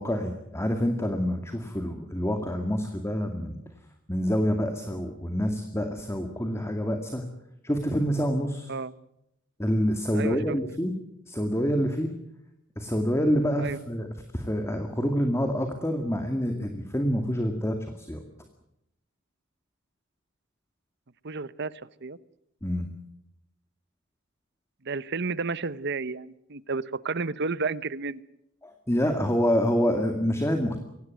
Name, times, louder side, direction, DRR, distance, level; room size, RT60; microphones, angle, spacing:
voice 1, 0.0-3.6 4.1-7.2 7.6-8.7 9.6-10.9 11.3-12.1 12.8-14.1 14.3-18.2 22.6-22.9 28.6-30.8, equal, 15° left, 5 dB, 2.1 m, -27 dB
voice 2, 10.1-10.6 13.6-13.8 21.2-21.7 22.0-22.2 24.8-28.2, right 4 dB, 55° right, 17 dB, 1.0 m, -31 dB
24.0 x 18.0 x 9.5 m, 0.83 s
head